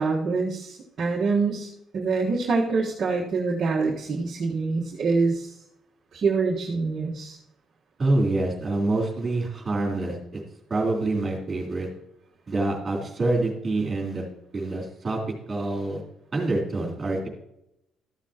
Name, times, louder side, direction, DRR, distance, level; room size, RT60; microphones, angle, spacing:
voice 1, 0.0-1.7 1.9-5.5 6.1-7.4, right 4 dB, 40° right, -4 dB, 1.4 m, -25 dB
voice 2, 8.0-10.4 10.7-11.9 12.5-14.2 14.5-15.2 15.5-16.0 16.3-17.3, right 2 dB, 25° right, -1 dB, 3.4 m, -26 dB
13.5 x 7.2 x 2.9 m, 0.79 s
cardioid pair, 155°, 0 cm